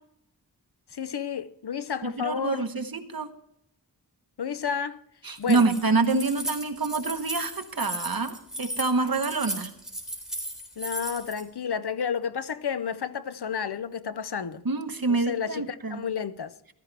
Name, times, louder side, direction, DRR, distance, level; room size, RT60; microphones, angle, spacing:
voice 1, 0.9-2.7 4.4-5.0 5.4-5.7 10.8-14.6 15.1-16.5, left 7 dB, 85° left, 0.6 m, -31 dB
voice 2, 2.0-3.3 5.2-9.7 14.6-16.0, right 3 dB, 65° right, 1.2 m, -26 dB
Keys jangling, 5.3-11.4, equal, ahead, 3.8 m, -35 dB
15.0 x 13.5 x 3.3 m
wide cardioid pair, 45°, 38 cm